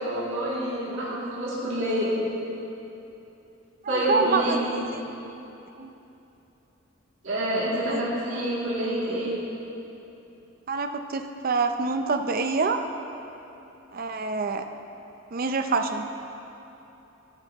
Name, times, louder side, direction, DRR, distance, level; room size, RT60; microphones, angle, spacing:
voice 1, 0.0-2.1 3.9-4.8 7.2-9.3, right 1 dB, 70° right, -8 dB, 2.5 m, -27 dB
voice 2, 3.8-4.6 4.9-5.0 5.8-5.9 7.9-8.0 10.7-12.8 13.9-14.6 15.3-16.1, right 4 dB, 45° right, 6 dB, 0.5 m, -26 dB
13.0 x 11.5 x 3.0 m, 3.0 s
head